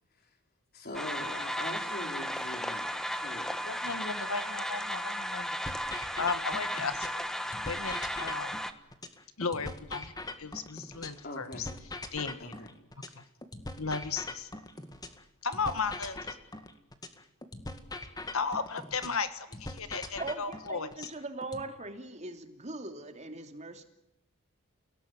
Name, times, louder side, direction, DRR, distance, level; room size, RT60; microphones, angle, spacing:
voice 1, 0.7-3.8 11.2-11.7 12.4-12.7, left 1 dB, 45° left, 4 dB, 4.8 m, -42 dB
sound 1, 0.9-8.7, equal, ahead, 1.4 m, -35 dB
voice 2, 3.6-5.6 6.2-7.2 7.6-8.5 9.4-10.1 10.4-11.7 12.1-12.5 13.8-14.5 15.4-16.4 18.3-21.1, left 5 dB, 70° left, 11 dB, 1.5 m, -35 dB
sound 2, 5.6-7.2 7.5-11.2 11.5-15.2 15.5-19.2 19.5-21.6, left 2 dB, 20° left, 2.1 m, -42 dB
voice 3, 20.2-23.8, right 2 dB, 30° right, 6 dB, 3.0 m, -40 dB
30.0 x 17.5 x 9.6 m, 0.88 s
head